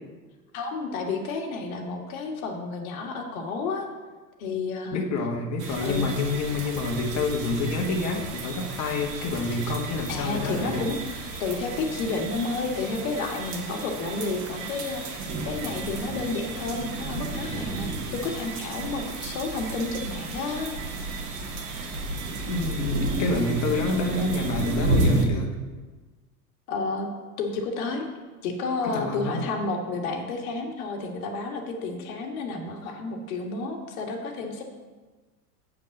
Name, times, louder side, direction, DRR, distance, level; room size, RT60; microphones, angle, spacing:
voice 1, 0.5-3.9 4.4-5.0 5.8-6.1 10.1-15.2 15.5-20.7 23.1-23.6 26.7-27.1 27.4-28.1 28.4-34.6, left 3 dB, 60° left, 3 dB, 1.8 m, -31 dB
voice 2, 4.9-10.9 22.5-25.5 28.8-29.5, left 3 dB, 35° left, 1 dB, 1.5 m, -28 dB
sound 1, 5.6-25.2, right 2 dB, 55° right, 1.9 m, -32 dB
8.1 x 5.6 x 6.6 m, 1.3 s
figure-of-eight pair, 85°, 47 cm